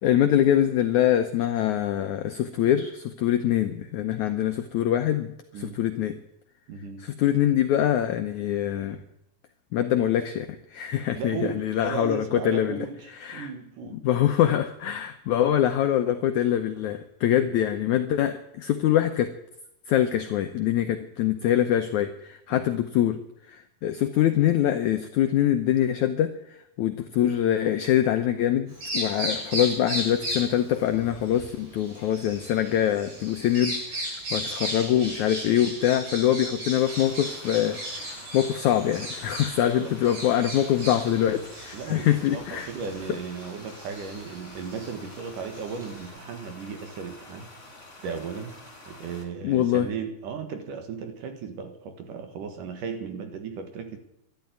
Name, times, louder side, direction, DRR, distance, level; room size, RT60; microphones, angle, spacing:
voice 1, 0.0-6.2 7.0-9.0 9.7-12.9 13.2-13.5 14.0-19.3 19.9-23.2 23.5-26.3 26.8-42.7 49.4-49.9, left 11 dB, 80° left, 7 dB, 1.7 m, -24 dB
voice 2, 5.5-5.8 6.7-7.1 11.2-14.0 22.5-22.7 41.7-47.5 48.0-48.6 48.9-54.0, right 6 dB, 60° right, 7 dB, 2.9 m, -36 dB
Bird vocalization bird call bird song, 28.7-46.1, equal, 75° right, 9.8 m, -36 dB
sound 1, 36.7-49.3, left 2 dB, 20° left, 3.4 m, -47 dB
13.0 x 12.0 x 9.3 m, 0.81 s
omnidirectional pair, 4.5 m